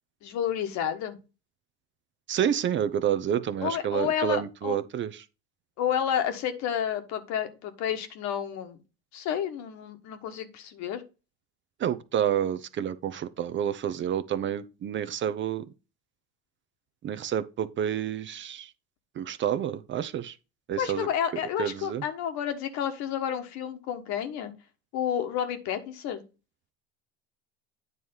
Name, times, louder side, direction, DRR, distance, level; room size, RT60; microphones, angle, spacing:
voice 1, 0.2-1.2 3.6-4.8 5.8-8.8 9.1-11.0 20.8-24.5 24.9-26.2, left 9 dB, 60° left, 1.4 m, -30 dB
voice 2, 2.3-5.1 11.8-15.6 17.0-18.7 19.2-20.3 20.7-21.1 21.6-22.0, right 9 dB, 35° right, 0.6 m, -29 dB
9.4 x 3.1 x 5.4 m
hypercardioid pair, 80°, 32 cm